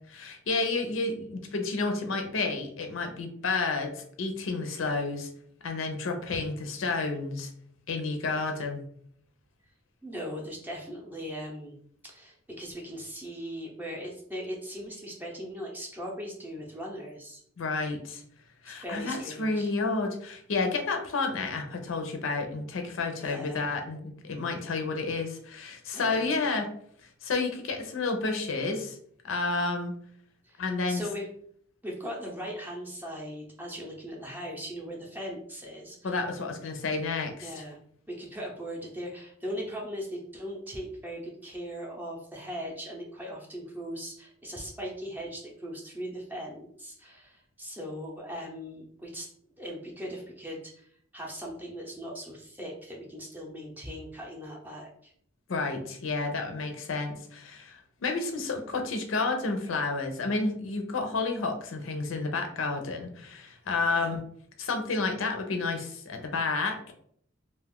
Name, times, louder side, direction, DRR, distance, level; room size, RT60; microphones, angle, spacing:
voice 1, 0.1-5.3 5.6-7.5 7.9-8.8 17.6-18.2 18.6-26.7 27.2-29.0 29.2-29.9 30.6-31.0 36.0-37.6 55.5-64.2 64.6-66.9, left 3 dB, 80° left, 4 dB, 0.6 m, -30 dB
voice 2, 10.0-11.8 12.0-17.4 18.6-19.7 23.2-23.6 25.9-26.6 30.4-31.3 31.8-36.1 37.4-37.8 38.1-49.3 49.6-50.9 51.1-55.1 63.8-64.1, equal, 10° right, -2 dB, 0.6 m, -39 dB
2.5 x 2.4 x 3.5 m, 0.64 s
head